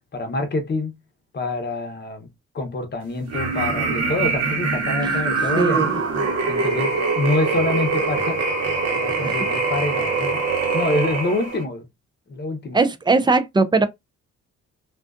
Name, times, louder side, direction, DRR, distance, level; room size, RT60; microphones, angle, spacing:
voice 1, 0.1-0.9 1.3-2.3 2.5-6.0 6.5-8.4 8.9-11.8 12.3-12.8, left 2 dB, 35° left, 0.8 m, -26 dB
sound 1, 3.3-11.6, right 4 dB, 55° right, 1.0 m, -23 dB
voice 2, 5.6-5.9 9.2-9.4 12.7-13.9, right 3 dB, 15° right, 0.3 m, -19 dB
2.4 x 2.3 x 2.3 m
cardioid pair, 90°, 30 cm